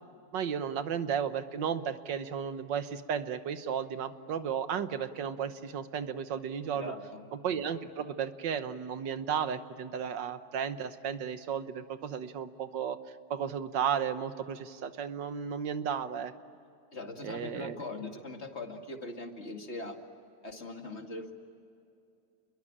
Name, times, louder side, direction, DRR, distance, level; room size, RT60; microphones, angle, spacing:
voice 1, 0.3-6.9 7.4-13.0 13.3-16.3 17.2-17.8, right 7 dB, 85° right, 10 dB, 1.8 m, -34 dB
voice 2, 6.7-7.3 16.9-20.0 20.4-21.3, left 2 dB, 35° left, 4 dB, 2.3 m, -41 dB
30.0 x 22.5 x 8.7 m, 2.5 s
omnidirectional pair, 1.9 m